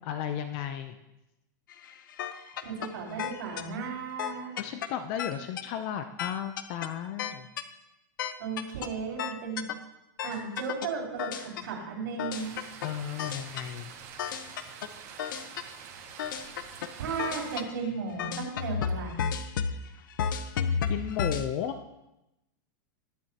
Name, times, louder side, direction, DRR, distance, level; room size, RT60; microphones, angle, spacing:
voice 1, 0.0-1.0 4.5-7.5 12.8-13.9 20.0-20.1 20.9-21.8, left 9 dB, 35° left, 8 dB, 0.6 m, -34 dB
sound 1, 1.7-2.9 3.2-3.6 4.2-4.9 5.2-5.6 6.2-6.9 7.2-7.6 8.2-8.9 9.2-9.7 10.2-10.9 11.2-11.6 12.2-12.9 13.2-13.6 14.2-14.9 15.2-15.6 16.2-16.9 17.2-17.7 18.2-21.5, left 7 dB, 80° left, 0.9 m, -32 dB
voice 2, 2.6-4.5 8.4-9.6 10.2-12.5 17.0-19.3, right 5 dB, 85° right, -5 dB, 4.5 m, -35 dB
sound 2, 12.3-17.6, right 7 dB, 50° right, 1.8 m, -46 dB
20.5 x 7.7 x 2.9 m, 0.91 s
supercardioid pair, 165°, 11 cm